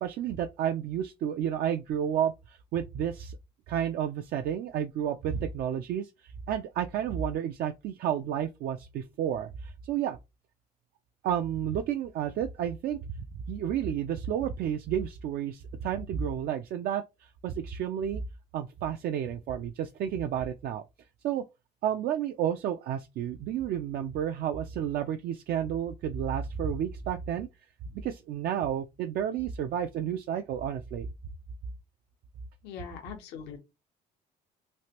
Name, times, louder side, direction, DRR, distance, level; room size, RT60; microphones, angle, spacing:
voice 1, 0.0-3.4 3.7-10.2 11.2-18.2 18.5-20.8 21.2-21.5 21.8-27.5 28.0-31.1, right 9 dB, 65° right, 0.4 m, -31 dB
voice 2, 32.6-33.6, left 7 dB, 90° left, 0.8 m, -41 dB
3.2 x 2.4 x 2.8 m
cardioid pair, 110°, 17 cm